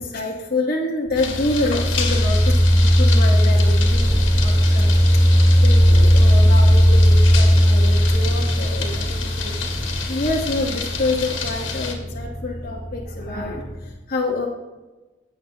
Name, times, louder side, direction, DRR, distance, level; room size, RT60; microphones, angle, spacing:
voice 1, 0.0-5.0 5.3-9.6 10.1-14.5, left 2 dB, 50° left, -3 dB, 1.2 m, -27 dB
sound 1, 1.1-11.9, left 5 dB, 80° left, 1.9 m, -30 dB
sound 2, 1.1-13.9, equal, 10° left, 1.3 m, -17 dB
16.0 x 7.6 x 2.8 m, 1.1 s
head